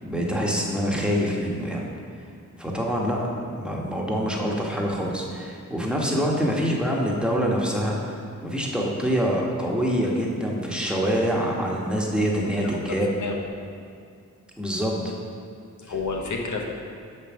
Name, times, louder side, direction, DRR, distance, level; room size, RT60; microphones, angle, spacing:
voice 1, 0.0-1.9 2.6-8.1 8.4-13.1 14.6-15.1, equal, 5° right, -3 dB, 1.2 m, -25 dB
voice 2, 12.1-13.4 15.8-16.6, left 4 dB, 70° left, 1 dB, 0.9 m, -32 dB
6.2 x 5.4 x 6.0 m, 2.3 s
cardioid pair, 75°, 31 cm